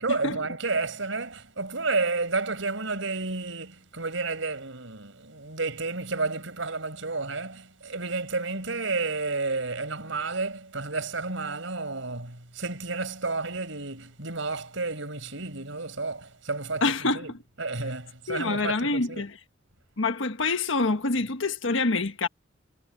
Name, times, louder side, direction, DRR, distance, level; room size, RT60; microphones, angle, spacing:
voice 1, 0.0-16.9 17.1-17.3 17.6-19.3, right 3 dB, 90° right, 5.2 m, -31 dB
voice 2, 16.8-17.3 18.3-19.4 20.0-22.3, left 3 dB, 90° left, 1.4 m, -26 dB
head